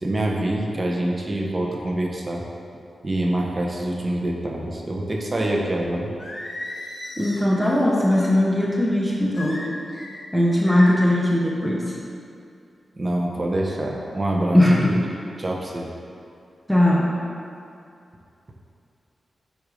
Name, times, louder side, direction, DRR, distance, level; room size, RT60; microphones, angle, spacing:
voice 1, 0.0-2.4 3.0-6.1 12.9-15.0 15.4-15.9, right 1 dB, 30° right, -1 dB, 0.8 m, -25 dB
Singing, 6.2-8.4 9.3-10.2 10.7-11.2, left 1 dB, 40° left, 0.9 m, -35 dB
voice 2, 7.2-9.6 10.3-11.9 14.5-15.0 16.7-17.1, left 1 dB, ahead, -4 dB, 0.8 m, -19 dB
7.9 x 2.7 x 5.0 m, 2.5 s
wide cardioid pair, 90°, 0 cm